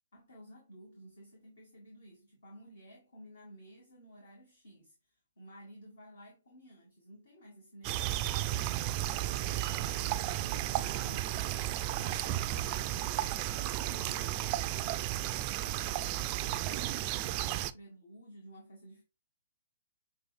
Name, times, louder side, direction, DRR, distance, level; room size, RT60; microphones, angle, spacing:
voice 1, 0.1-8.7 17.5-19.0, right 1 dB, 65° left, 1.4 m, -55 dB
sound 1, 7.8-17.7, right 14 dB, 30° right, 0.3 m, -33 dB
sound 2, 10.6-14.6, left 3 dB, 30° left, 0.9 m, -55 dB
6.4 x 2.4 x 3.2 m
figure-of-eight pair, 125°, 0 cm